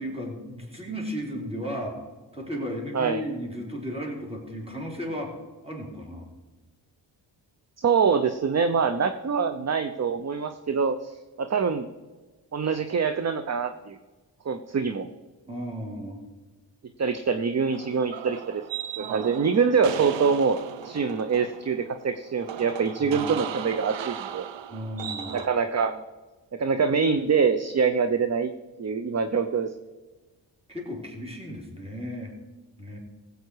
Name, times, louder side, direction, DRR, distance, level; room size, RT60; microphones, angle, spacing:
voice 1, 0.0-2.0 2.3-5.3 5.6-6.3 15.5-16.2 23.0-23.3 24.7-25.3 30.7-32.3 32.8-33.0, equal, 15° right, -1 dB, 3.9 m, -34 dB
voice 2, 7.8-11.1 11.4-11.9 12.5-14.0 14.4-15.1 17.0-18.6 19.0-20.6 20.8-24.5 25.3-26.0 26.6-28.5 28.8-29.7, right 5 dB, 35° right, 10 dB, 0.8 m, -24 dB
sound 1, 17.7-25.5, right 9 dB, 70° right, 0.8 m, -37 dB
16.0 x 8.1 x 4.8 m, 1.2 s
cardioid pair, 60°, 45 cm